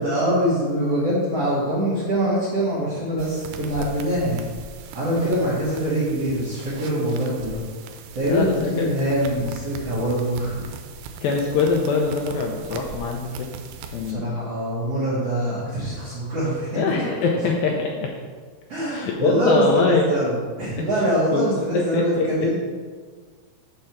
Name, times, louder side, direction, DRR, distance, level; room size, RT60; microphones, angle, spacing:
voice 1, 0.0-4.4 4.9-7.6 8.1-10.6 14.0-16.8 18.7-22.5, equal, 60° right, -9 dB, 1.6 m, -24 dB
sound 1, 3.2-14.1, right 5 dB, 85° right, 2.6 m, -39 dB
voice 2, 8.3-8.9 11.2-13.5 13.9-14.3 16.8-18.1 18.9-20.1 20.8-21.4 21.7-22.3, left 4 dB, 80° left, 0 dB, 2.1 m, -23 dB
6.5 x 4.4 x 5.8 m, 1.5 s
omnidirectional pair, 4.7 m